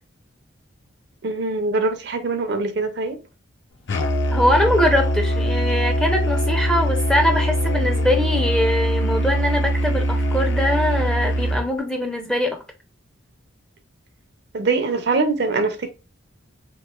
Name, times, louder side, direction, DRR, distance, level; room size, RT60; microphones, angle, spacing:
voice 1, 1.2-3.2 14.5-15.9, right 3 dB, 55° right, 0.5 m, -23 dB
Musical instrument, 3.9-11.7, equal, 55° left, 0.5 m, -22 dB
voice 2, 4.3-12.6, left 1 dB, 5° left, 0.4 m, -22 dB
3.6 x 3.0 x 2.3 m
head